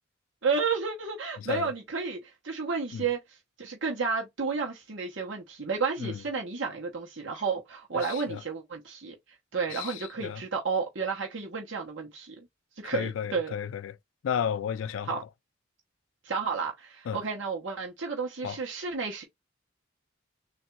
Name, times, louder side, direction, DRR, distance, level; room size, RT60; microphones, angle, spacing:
voice 1, 0.4-9.1 9.5-12.3 12.8-13.5 15.1-15.2 16.2-19.2, right 5 dB, 70° right, 1.0 m, -32 dB
voice 2, 1.4-1.7 2.9-3.0 6.0-6.2 8.0-8.4 9.7-10.4 12.8-14.0 14.2-15.2 17.1-17.2 18.4-18.6, left 8 dB, 80° left, 0.3 m, -33 dB
3.6 x 2.5 x 4.4 m
head